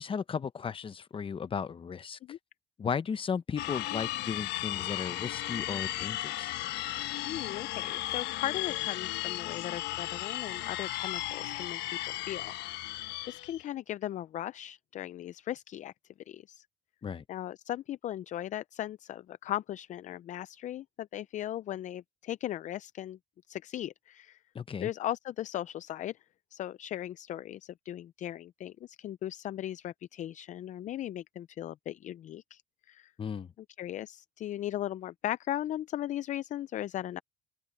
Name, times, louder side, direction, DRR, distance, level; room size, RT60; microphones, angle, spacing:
voice 1, 0.0-2.2 2.8-6.5 17.0-17.2 24.5-24.9 33.2-33.5, left 6 dB, 30° left, 0.9 m, -35 dB
sound 1, 3.6-13.6, left 15 dB, 85° left, 1.2 m, -35 dB
voice 2, 7.2-15.9 16.3-16.7 17.3-23.2 23.5-24.4 24.8-26.2 26.5-32.6 32.9-33.1 33.8-37.2, left 12 dB, 45° left, 0.4 m, -38 dB
open air
cardioid pair, 110°, 17 cm